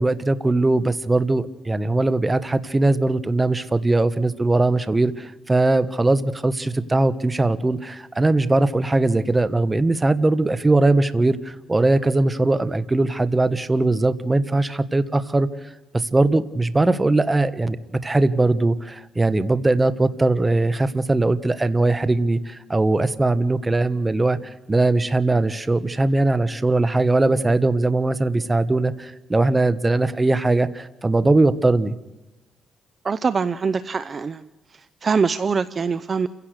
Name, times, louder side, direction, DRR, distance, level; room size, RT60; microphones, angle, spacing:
voice 1, 0.0-15.5 15.9-31.9, right 2 dB, 20° right, 13 dB, 1.4 m, -20 dB
voice 2, 33.0-34.5 35.0-36.3, right 5 dB, 40° right, 13 dB, 0.7 m, -23 dB
29.0 x 16.5 x 6.6 m, 1.0 s
cardioid pair, 90°, 0 cm